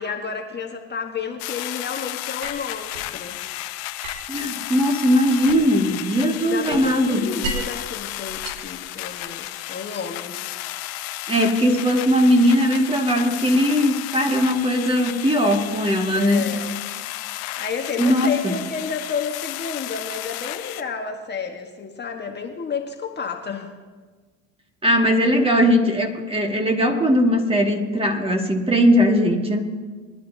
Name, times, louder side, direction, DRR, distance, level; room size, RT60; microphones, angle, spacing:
voice 1, 0.0-3.4 6.5-10.4 16.1-16.7 17.3-23.7, left 5 dB, 30° left, 3 dB, 1.4 m, -31 dB
sound 1, 1.4-20.8, left 15 dB, 70° left, 0.9 m, -33 dB
sound 2, 2.4-3.1 4.0-5.9 6.2-7.8 8.3-9.4, right 2 dB, 75° right, 2.6 m, -35 dB
voice 2, 4.3-7.3 11.3-16.5 18.0-18.5 24.8-29.6, equal, 15° right, 2 dB, 2.0 m, -19 dB
23.0 x 11.0 x 2.8 m, 1.4 s
hypercardioid pair, 75°, 36 cm